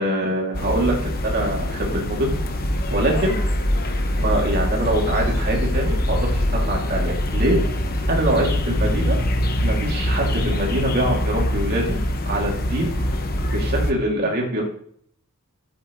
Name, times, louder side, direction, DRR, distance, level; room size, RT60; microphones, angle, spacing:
voice 1, 0.0-2.4 2.9-3.4 4.2-7.6 8.1-9.2 9.6-12.0 12.3-12.9 13.5-14.6, right 1 dB, 45° right, -1 dB, 2.7 m, -24 dB
sound 1, 0.5-13.9, left 1 dB, 45° left, 1.0 m, -23 dB
12.0 x 8.6 x 3.2 m, 0.62 s
head